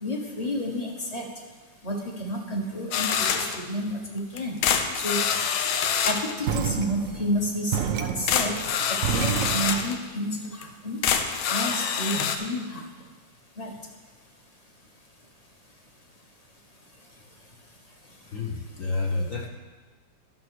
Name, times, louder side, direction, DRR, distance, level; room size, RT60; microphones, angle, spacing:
voice 1, 0.0-1.2 1.8-3.1 3.3-4.6 4.9-5.2 6.0-8.5 9.1-11.0 11.4-12.8 13.6-13.7, equal, 25° left, 1 dB, 1.0 m, -30 dB
sound 1, 2.9-3.6 4.4-6.3 7.9-8.0 8.3-10.0 10.6-10.7 11.0-12.4, left 7 dB, 85° left, 1.6 m, -26 dB
sound 2, 6.4-9.9, right 9 dB, 85° right, 0.7 m, -30 dB
voice 2, 18.3-19.5, left 3 dB, 50° left, 1 dB, 1.1 m, -29 dB
11.5 x 6.1 x 6.4 m, 1.4 s
omnidirectional pair, 2.2 m